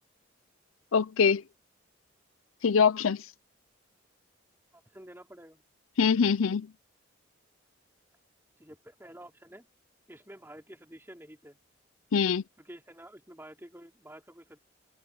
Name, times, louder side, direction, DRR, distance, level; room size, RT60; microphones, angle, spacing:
voice 1, 0.9-1.4 2.6-3.3 6.0-6.7 12.1-12.4, left 6 dB, 80° left, 0.5 m, -23 dB
voice 2, 4.7-5.6 8.6-9.7 10.1-11.6 12.6-14.6, right 1 dB, 10° right, 5.0 m, -50 dB
head